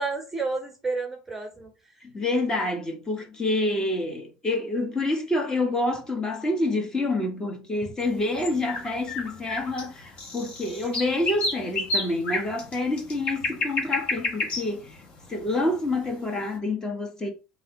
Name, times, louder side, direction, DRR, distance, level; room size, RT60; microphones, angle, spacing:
voice 1, 0.0-1.7 10.6-10.9, right 3 dB, 10° right, 1.0 m, -31 dB
voice 2, 2.0-15.0 15.3-17.3, left 2 dB, 20° left, 1.4 m, -27 dB
sound 1, 8.0-16.2, left 2 dB, 40° left, 1.4 m, -31 dB
4.0 x 2.9 x 4.0 m
supercardioid pair, 95°, 3 cm